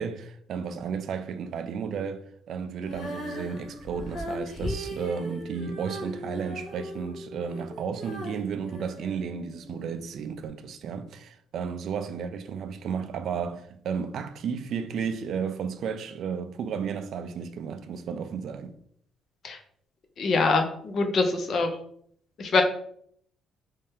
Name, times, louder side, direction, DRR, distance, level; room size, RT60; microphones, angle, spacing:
voice 1, 0.0-18.7, right 6 dB, 55° right, 0.3 m, -33 dB
Female singing, 2.8-9.9 10.5-10.6, equal, 70° left, 1.3 m, -38 dB
voice 2, 20.2-21.7 22.4-22.6, left 3 dB, 40° left, 0.5 m, -24 dB
3.2 x 2.8 x 3.5 m
cardioid pair, 150°, 0 cm